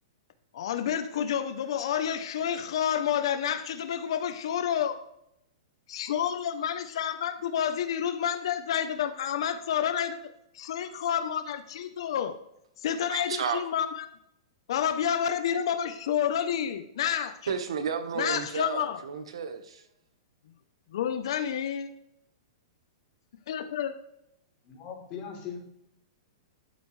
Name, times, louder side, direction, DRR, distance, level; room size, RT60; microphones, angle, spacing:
voice 1, 0.5-5.0 5.9-10.2 10.5-12.4 12.8-14.1 14.7-17.3 18.2-19.0 20.9-21.9 23.5-23.9, left 9 dB, 65° left, 0.8 m, -29 dB
voice 2, 13.1-13.6 17.5-19.8, right 6 dB, 85° right, 1.3 m, -32 dB
voice 3, 24.6-25.6, left 7 dB, 30° left, 3.4 m, -39 dB
11.5 x 7.9 x 3.3 m
hypercardioid pair, 150°, 3 cm